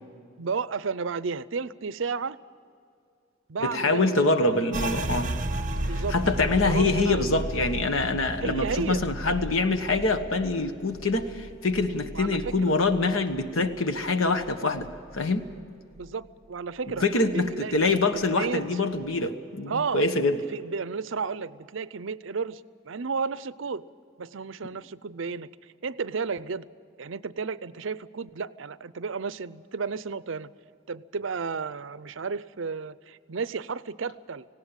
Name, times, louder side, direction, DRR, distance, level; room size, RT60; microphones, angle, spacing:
voice 1, 0.4-2.4 3.5-4.7 5.9-6.2 6.7-7.5 8.4-9.0 12.1-12.7 16.0-18.6 19.7-20.1 20.5-23.8 24.2-26.7 27.0-30.5 30.9-34.5, right 5 dB, 70° right, 17 dB, 0.6 m, -33 dB
voice 2, 3.6-5.3 6.1-14.9 15.1-15.5 17.0-20.4, left 3 dB, 90° left, 9 dB, 1.3 m, -25 dB
sound 1, 4.7-14.1 14.4-15.7 16.0-16.5 16.9-17.5, right 1 dB, 40° right, 1.1 m, -35 dB
18.5 x 17.0 x 9.0 m, 2.4 s
head